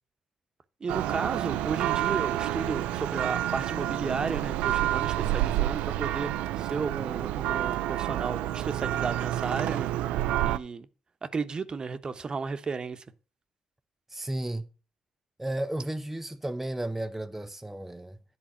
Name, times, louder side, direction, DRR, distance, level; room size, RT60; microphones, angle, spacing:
voice 1, 0.8-6.3 6.6-9.9 10.4-10.9 11.2-13.0, right 5 dB, 40° right, 0.9 m, -33 dB
Church bell, 0.9-10.6, right 13 dB, 85° right, 0.4 m, -29 dB
voice 2, 14.1-14.7 15.4-18.2, right 1 dB, 10° right, 0.6 m, -33 dB
10.5 x 4.0 x 7.2 m
supercardioid pair, 55°, 2 cm